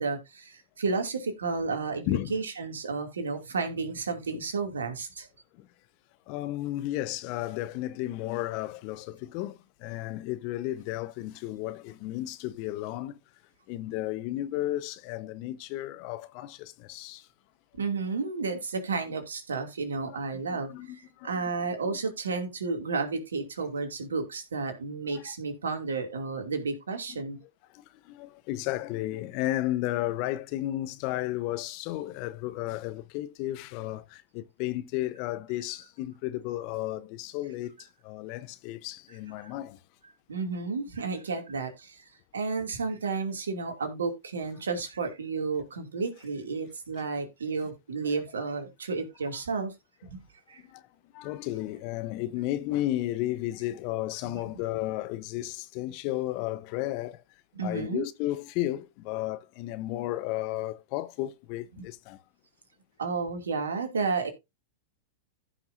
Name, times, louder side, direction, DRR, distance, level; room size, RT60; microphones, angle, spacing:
voice 1, 0.0-5.3 17.8-21.0 21.2-27.4 39.4-39.5 40.3-42.0 42.3-49.7 50.0-50.2 50.5-50.6 54.2-54.3 57.6-58.0 61.8-61.9 63.0-64.3, right 4 dB, 80° right, 2.5 m, -32 dB
voice 2, 2.1-2.4 5.5-5.7 6.3-13.2 13.7-17.3 20.7-21.4 25.1-25.3 27.1-27.2 27.7-39.8 50.6-50.9 51.1-57.2 57.6-62.2, left 15 dB, 50° left, 0.9 m, -33 dB
15.0 x 5.9 x 2.6 m
hypercardioid pair, 100°, 0 cm